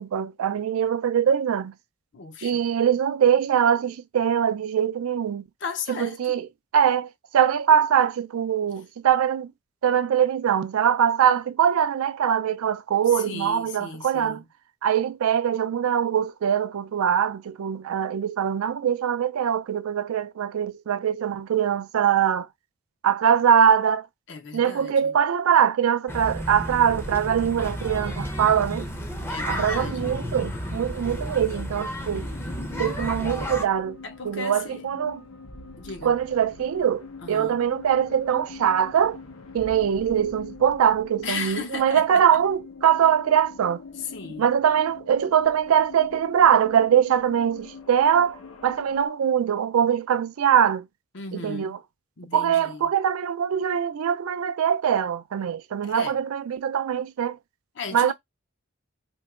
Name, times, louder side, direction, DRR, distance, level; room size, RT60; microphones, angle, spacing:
voice 1, 0.0-1.7 2.4-5.4 5.9-6.5 6.7-9.5 9.8-14.4 14.8-22.5 23.0-24.1 24.5-28.9 29.5-32.3 32.8-34.0 34.2-35.2 36.0-39.2 39.5-43.8 44.4-50.9 51.3-51.8 52.3-57.4 57.9-58.1, right 8 dB, 85° right, 0.4 m, -22 dB
voice 2, 2.1-2.6 5.6-6.4 13.1-14.4 24.3-25.1 29.3-30.1 34.0-34.8 35.8-36.1 37.2-37.6 41.2-42.2 44.0-44.5 51.1-51.7 52.2-52.9 55.8-56.2 57.8-58.1, left 5 dB, 55° left, 0.6 m, -36 dB
sound 1, 26.1-33.6, equal, 10° left, 0.5 m, -32 dB
sound 2, 32.0-49.1, left 4 dB, 90° left, 0.9 m, -44 dB
4.4 x 2.9 x 2.4 m
head